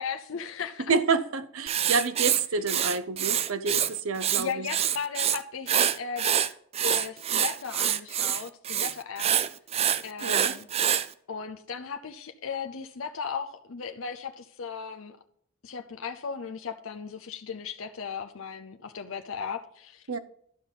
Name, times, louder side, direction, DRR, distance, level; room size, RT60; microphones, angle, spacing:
voice 1, 0.0-0.9 2.6-2.7 4.4-6.3 6.8-9.4 10.0-10.7 11.3-15.2 15.6-20.0, left 6 dB, 70° left, 0.6 m, -36 dB
voice 2, 0.9-4.7 10.2-10.5 20.1-20.2, right 4 dB, 80° right, 0.7 m, -28 dB
Writing, 1.7-3.9 4.2-5.4 5.7-11.1, right 9 dB, 30° right, 0.3 m, -26 dB
12.0 x 5.4 x 3.9 m
head